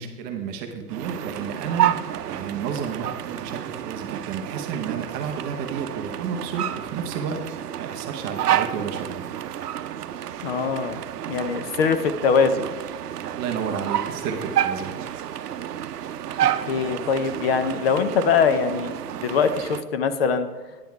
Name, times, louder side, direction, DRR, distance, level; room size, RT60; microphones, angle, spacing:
voice 1, 0.0-7.4 7.8-9.2 13.3-15.0, right 6 dB, 20° right, 4 dB, 0.6 m, -31 dB
sound 1, 0.9-19.8, right 10 dB, 80° right, 0.7 m, -30 dB
voice 2, 10.4-11.0 11.3-12.7 16.7-18.9 19.2-20.5, left 6 dB, 40° left, 10 dB, 0.6 m, -22 dB
9.5 x 7.0 x 4.6 m, 1.3 s
hypercardioid pair, 130°, 47 cm